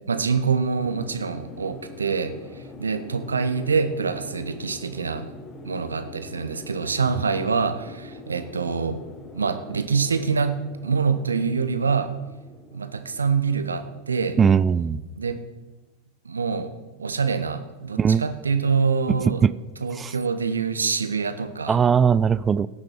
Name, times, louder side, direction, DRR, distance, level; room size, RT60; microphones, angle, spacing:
voice 1, 0.1-2.3 2.8-5.3 5.6-9.0 9.3-12.1 12.7-14.4 15.2-15.4 16.2-16.7 17.0-19.4 19.8-21.8, right 5 dB, 75° right, 9 dB, 1.0 m, -25 dB
sound 1, 0.8-15.6, left 3 dB, 20° left, 1.3 m, -44 dB
voice 2, 14.4-15.0 18.0-18.3 19.1-19.5 19.9-20.1 21.7-22.7, right 6 dB, 20° right, 17 dB, 0.4 m, -20 dB
17.5 x 6.6 x 4.5 m, 1.2 s
figure-of-eight pair, 90°, 0 cm